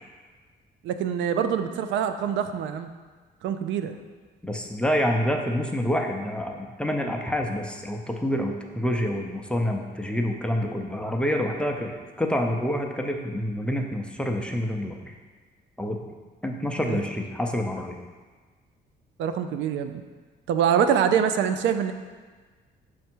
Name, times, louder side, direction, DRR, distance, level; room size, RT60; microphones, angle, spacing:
voice 1, 0.8-2.9 3.4-4.0 16.9-17.0 19.2-20.0 20.5-21.9, right 8 dB, 85° right, 9 dB, 0.4 m, -24 dB
voice 2, 4.4-11.9 12.2-15.1 15.8-16.0 16.4-18.0, equal, 5° left, 2 dB, 0.5 m, -27 dB
6.2 x 3.5 x 4.4 m, 1.4 s
cardioid pair, 105°, 19 cm